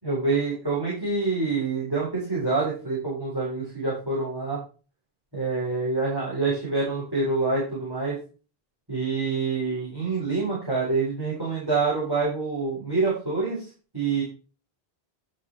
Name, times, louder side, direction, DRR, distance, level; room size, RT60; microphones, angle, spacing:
voice 1, 0.0-4.6 5.3-8.2 8.9-13.7 13.9-14.2, right 3 dB, 20° right, -8 dB, 4.4 m, -26 dB
11.0 x 6.4 x 4.6 m, 0.36 s
omnidirectional pair, 1.1 m